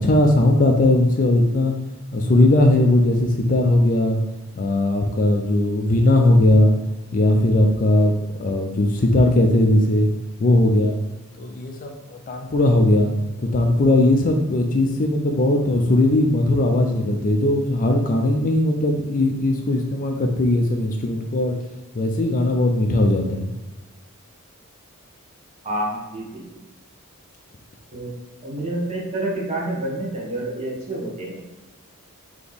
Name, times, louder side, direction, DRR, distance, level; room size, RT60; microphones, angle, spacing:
voice 1, 0.0-1.7 2.1-4.2 4.6-6.7 7.1-8.1 8.4-10.1 10.4-11.0 11.4-13.1 13.4-21.5 21.9-23.5, left 1 dB, 35° left, 3 dB, 0.4 m, -18 dB
voice 2, 25.6-26.6 27.9-28.1 28.4-31.4, right 1 dB, 30° right, -5 dB, 1.2 m, -28 dB
4.1 x 2.9 x 3.4 m, 1.0 s
head